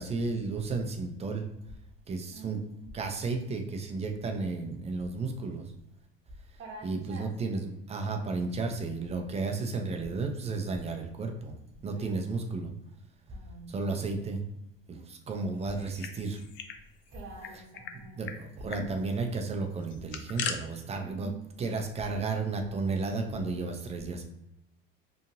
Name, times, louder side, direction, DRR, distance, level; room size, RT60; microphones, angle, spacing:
voice 1, 0.0-1.5 2.1-2.6 2.9-5.7 6.8-7.6 7.9-11.5 11.8-12.7 13.7-14.4 14.9-16.4 18.2-21.3 21.6-24.2, right 3 dB, 20° right, 4 dB, 0.4 m, -33 dB
voice 2, 2.3-2.9 6.6-7.5 11.9-12.3 13.3-14.1 17.1-18.4 20.9-21.4, right 5 dB, 40° right, -2 dB, 0.9 m, -46 dB
sound 1, 15.7-16.8 17.1-17.2 17.4-17.9 18.2-18.4 18.7-18.9 19.8-20.6, left 7 dB, 40° left, 0.4 m, -38 dB
2.9 x 2.4 x 2.6 m, 0.84 s
supercardioid pair, 110°, 31 cm